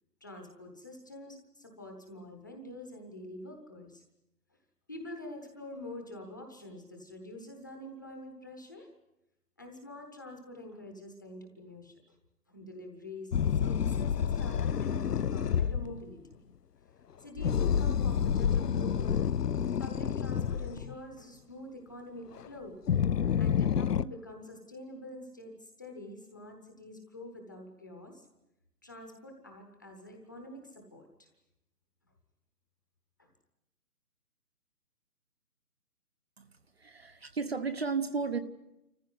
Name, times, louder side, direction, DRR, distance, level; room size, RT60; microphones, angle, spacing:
voice 1, 0.2-4.0 4.5-4.6 4.9-8.9 9.6-12.2 12.5-16.4 17.1-19.2 19.8-22.8 23.4-28.3 28.8-31.3 33.2-33.3, left 1 dB, 10° left, 2 dB, 1.0 m, -46 dB
sound 1, 13.3-16.0 17.4-20.9 22.4-22.5 22.9-24.0, left 8 dB, 80° left, 0.7 m, -29 dB
voice 2, 36.8-38.4, right 4 dB, 40° right, 10 dB, 1.0 m, -33 dB
26.5 x 15.0 x 9.5 m, 0.92 s
hypercardioid pair, 170°, 47 cm